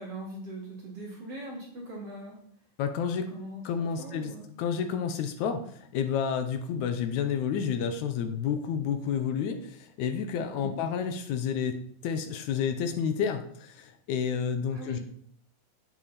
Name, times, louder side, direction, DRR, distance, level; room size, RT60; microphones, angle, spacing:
voice 1, 0.0-2.4 3.3-4.4 10.6-10.8 14.7-15.0, right 1 dB, 50° right, -3 dB, 2.6 m, -41 dB
voice 2, 2.8-3.3 3.7-4.3 4.6-5.6 5.9-15.0, left 7 dB, 75° left, 7 dB, 1.8 m, -30 dB
8.8 x 6.9 x 4.2 m, 0.64 s
omnidirectional pair, 3.9 m